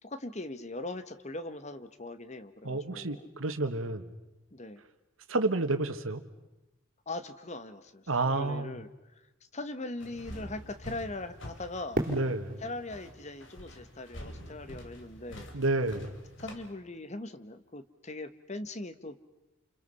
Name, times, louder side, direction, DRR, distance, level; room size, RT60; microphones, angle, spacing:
voice 1, 0.0-3.3 4.5-4.8 7.1-8.9 9.5-12.0 12.6-15.5 16.4-19.2, left 2 dB, 35° left, 11 dB, 1.2 m, -40 dB
voice 2, 2.6-4.0 5.3-6.2 8.1-8.7 12.1-12.6 15.5-16.1, right 2 dB, 80° right, 9 dB, 1.7 m, -30 dB
sound 1, 10.0-16.7, equal, 60° left, 3.3 m, -47 dB
Fireworks, 11.9-15.0, right 1 dB, 40° right, 3.0 m, -38 dB
29.0 x 29.0 x 5.6 m, 0.99 s
head